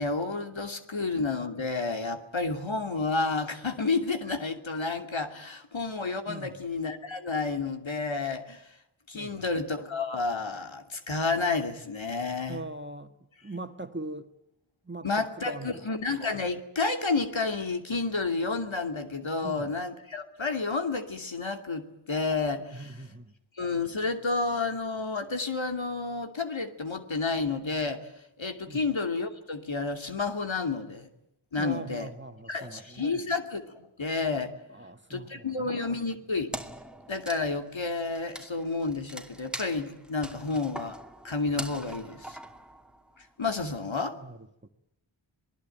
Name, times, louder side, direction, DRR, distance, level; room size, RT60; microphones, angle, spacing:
voice 1, 0.0-8.7 9.1-12.6 15.0-23.0 23.6-28.1 28.4-31.1 31.5-32.1 32.5-34.5 35.1-36.5 37.1-42.4 43.2-44.2, left 3 dB, 70° left, 2.8 m, -30 dB
voice 2, 6.3-6.6 9.1-9.5 12.5-13.1 13.4-14.3 14.8-15.8 19.4-19.8 22.7-23.3 28.6-28.8 31.6-33.2 34.7-35.8 44.2-44.7, right 2 dB, 20° right, 1.9 m, -41 dB
Wood, 36.5-43.2, right 1 dB, ahead, 2.5 m, -42 dB
27.0 x 19.5 x 9.1 m
wide cardioid pair, 40°, 49 cm